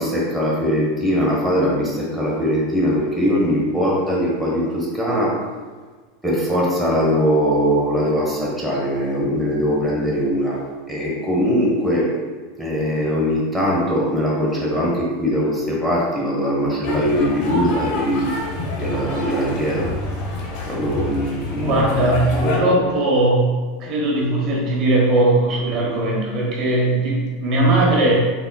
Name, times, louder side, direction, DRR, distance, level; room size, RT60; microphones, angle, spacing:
voice 1, 0.0-5.4 6.2-10.6 10.9-12.1 12.6-18.3 18.8-19.9 20.7-21.8 22.4-22.8, equal, ahead, -6 dB, 1.1 m, -21 dB
sound 1, 16.8-22.6, left 2 dB, 55° left, 0.9 m, -28 dB
voice 2, 21.5-23.5 23.8-28.1, right 2 dB, 45° right, -3 dB, 1.1 m, -19 dB
4.0 x 3.7 x 2.3 m, 1.4 s
hypercardioid pair, 110°, 0 cm